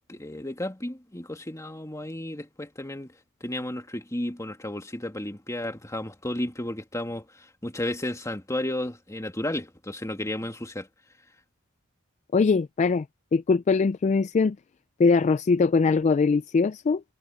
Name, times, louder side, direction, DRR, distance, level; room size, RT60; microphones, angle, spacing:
voice 1, 0.1-3.1 3.4-10.9, left 1 dB, 15° left, 2.2 m, -33 dB
voice 2, 12.3-13.1 13.3-14.6 15.0-17.0, left 4 dB, 30° left, 0.3 m, -21 dB
head